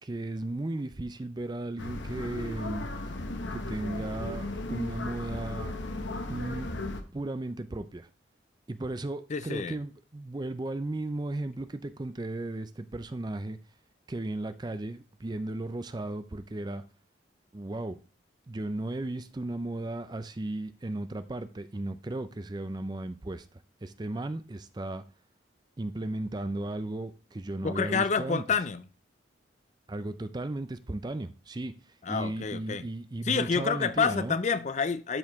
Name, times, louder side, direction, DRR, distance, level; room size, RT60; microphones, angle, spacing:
voice 1, 0.0-2.9 3.5-5.7 6.3-6.7 7.1-8.1 8.7-13.6 14.1-16.8 17.5-18.0 18.5-23.5 23.8-25.0 25.8-28.4 29.9-34.4, right 2 dB, 20° right, 0.4 m, -35 dB
sound 1, 1.8-7.0, left 2 dB, 75° left, 1.0 m, -36 dB
voice 2, 9.3-9.8 27.6-28.8 32.0-32.9 33.2-35.2, left 5 dB, 40° left, 0.4 m, -28 dB
12.0 x 4.7 x 3.5 m
head